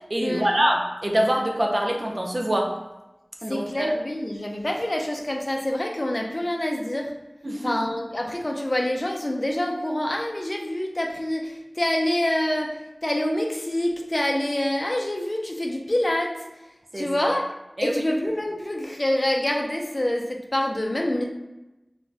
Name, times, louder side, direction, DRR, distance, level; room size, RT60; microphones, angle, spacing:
voice 1, 0.1-2.7 3.4-3.9 7.4-7.8 16.9-17.3 17.8-18.0, right 1 dB, 50° right, 0 dB, 0.4 m, -25 dB
voice 2, 3.5-7.1 7.6-12.8 13.0-16.5 16.9-17.5 17.8-21.2, left 1 dB, 45° left, 1 dB, 0.4 m, -26 dB
2.5 x 2.2 x 3.1 m, 0.98 s
wide cardioid pair, 45°, 0 cm